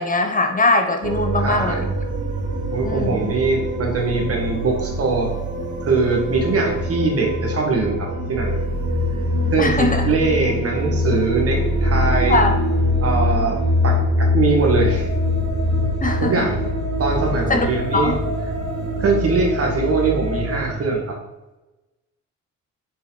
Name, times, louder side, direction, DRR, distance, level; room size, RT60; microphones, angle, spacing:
voice 1, 0.0-1.9 2.8-3.3 9.6-10.1 12.3-12.6 16.0-16.5 17.5-17.7 17.9-18.2, left 2 dB, 25° left, 5 dB, 0.9 m, -21 dB
sound 1, 1.0-20.7, left 1 dB, 75° right, 1.6 m, -23 dB
voice 2, 1.4-1.8 2.7-5.4 5.8-8.6 9.5-12.4 13.0-15.1 16.2-16.6 17.0-18.1 19.0-21.2, right 4 dB, 50° right, 1 dB, 2.1 m, -22 dB
6.7 x 5.3 x 4.1 m, 1.0 s
cardioid pair, 90°, 30 cm